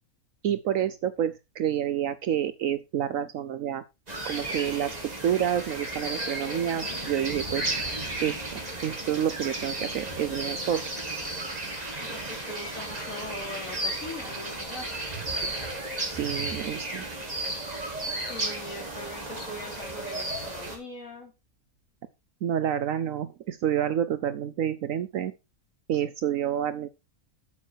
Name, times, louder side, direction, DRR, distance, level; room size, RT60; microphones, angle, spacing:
voice 1, 0.4-3.8 4.2-7.7 8.2-10.8 16.1-17.1 22.4-25.3 25.9-26.9, right 10 dB, 70° right, 13 dB, 1.0 m, -28 dB
sound 1, 4.1-20.8, right 2 dB, 25° right, 2.4 m, -34 dB
voice 2, 12.0-14.9 18.3-21.3, left 2 dB, 65° left, 3 dB, 3.2 m, -41 dB
8.5 x 7.3 x 4.6 m, 0.25 s
omnidirectional pair, 1.5 m